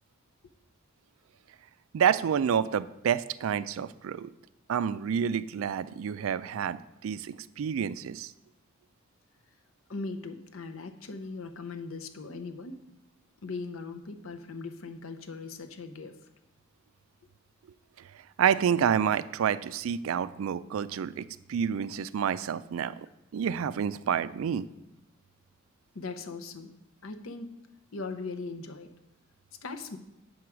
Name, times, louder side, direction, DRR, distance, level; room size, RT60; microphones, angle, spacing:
voice 1, 1.9-4.3 4.7-8.3 18.4-22.9 23.3-24.7, right 8 dB, 70° right, 16 dB, 0.3 m, -28 dB
voice 2, 9.9-12.8 13.4-16.1 25.9-26.7 27.0-27.6 27.9-28.9 29.6-30.0, left 3 dB, 75° left, 7 dB, 0.8 m, -39 dB
7.7 x 4.7 x 6.0 m, 0.88 s
head